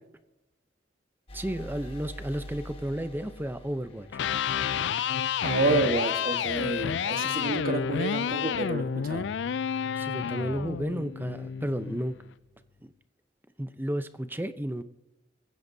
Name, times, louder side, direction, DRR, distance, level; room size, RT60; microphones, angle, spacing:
sound 1, 1.3-5.0, equal, 30° left, 1.4 m, -44 dB
voice 1, 1.3-4.2 9.9-12.2 12.8-12.9 13.6-14.8, right 1 dB, 10° right, 0.6 m, -32 dB
Electric guitar, 4.0-12.1, left 7 dB, 70° left, 0.4 m, -30 dB
voice 2, 5.4-9.3, right 2 dB, 50° right, 1.3 m, -29 dB
Harp, 5.8-8.3, equal, 90° left, 4.7 m, -46 dB
22.0 x 15.5 x 2.7 m
head